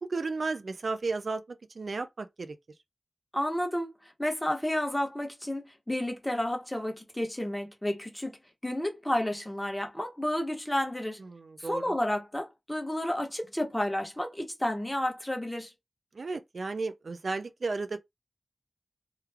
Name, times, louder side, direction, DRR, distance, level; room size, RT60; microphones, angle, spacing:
voice 1, 0.0-2.6 11.2-11.9 16.1-18.0, right 3 dB, 65° right, 0.4 m, -34 dB
voice 2, 3.3-3.9 4.2-8.4 8.6-11.2 11.6-15.7, left 1 dB, 10° left, 1.1 m, -31 dB
3.1 x 2.3 x 3.4 m
wide cardioid pair, 75°, 0 cm